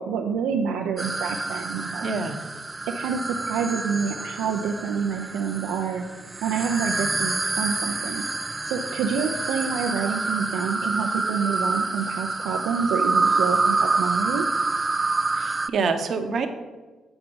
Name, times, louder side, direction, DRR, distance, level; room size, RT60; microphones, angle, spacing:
voice 1, 0.0-2.1 2.9-6.0 6.4-8.2 8.7-14.5, right 6 dB, 80° right, 2 dB, 0.5 m, -27 dB
sound 1, 1.0-15.7, right 3 dB, 25° right, 0.4 m, -27 dB
voice 2, 2.0-2.4 15.3-16.5, right 4 dB, 60° right, 6 dB, 0.9 m, -26 dB
8.1 x 4.8 x 5.4 m, 1.3 s
supercardioid pair, 55°, 0 cm